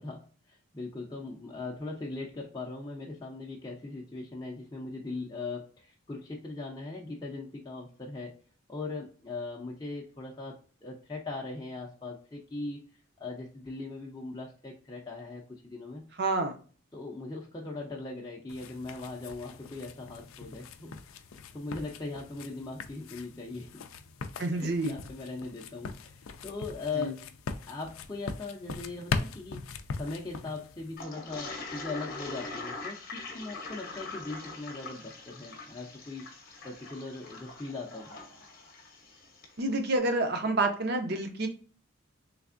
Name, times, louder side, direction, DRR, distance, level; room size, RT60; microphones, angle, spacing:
voice 1, 0.0-8.4 8.7-10.6 10.8-12.8 13.2-16.0 16.9-21.0 21.5-23.8 24.5-27.2 27.7-29.7 30.0-36.3 36.6-38.1, left 3 dB, 20° left, -2 dB, 0.5 m, -39 dB
voice 2, 16.2-16.6 24.4-24.9 27.0-27.1 39.6-41.5, right 2 dB, 50° right, 6 dB, 0.6 m, -28 dB
sound 1, 18.5-31.0, left 4 dB, 75° left, 0.4 m, -41 dB
Toilet flush, 31.0-39.6, left 3 dB, 45° left, 0.8 m, -43 dB
3.4 x 3.3 x 2.4 m, 0.40 s
head